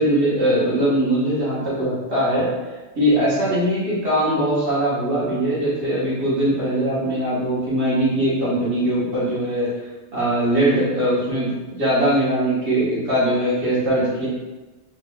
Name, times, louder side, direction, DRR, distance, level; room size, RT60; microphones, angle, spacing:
voice 1, 0.0-2.5 2.9-9.7 10.1-14.3, right 1 dB, 90° right, -10 dB, 1.6 m, -21 dB
4.5 x 3.6 x 2.3 m, 1.2 s
omnidirectional pair, 1.1 m